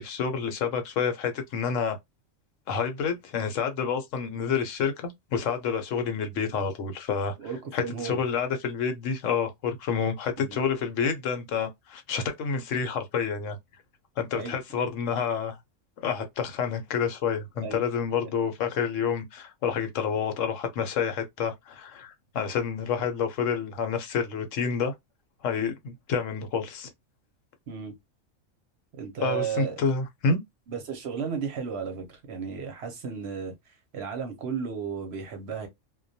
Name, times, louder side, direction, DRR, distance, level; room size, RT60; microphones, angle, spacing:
voice 1, 0.0-2.0 2.7-7.3 7.7-13.6 14.2-15.6 16.0-24.9 25.4-26.9 29.2-30.4, left 6 dB, 75° left, 0.9 m, -28 dB
voice 2, 7.4-8.2 10.4-10.6 14.3-14.9 17.6-17.8 27.7-27.9 28.9-29.8 30.7-33.5 33.9-35.7, right 6 dB, 60° right, 0.8 m, -34 dB
2.2 x 2.2 x 2.5 m
omnidirectional pair, 1.4 m